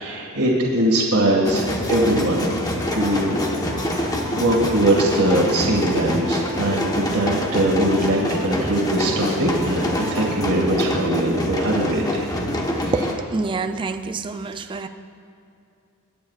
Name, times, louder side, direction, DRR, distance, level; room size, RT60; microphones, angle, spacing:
voice 1, 0.0-2.5 2.9-3.4 3.8-12.3 12.8-12.9, right 1 dB, 80° right, -2 dB, 1.8 m, -21 dB
sound 1, 1.4-13.1, left 1 dB, 15° left, 1.0 m, -26 dB
sound 2, 2.8-10.4, left 2 dB, 50° left, 2.4 m, -40 dB
voice 2, 12.9-14.9, right 3 dB, 20° right, 8 dB, 0.3 m, -27 dB
21.5 x 9.6 x 2.4 m, 2.6 s
head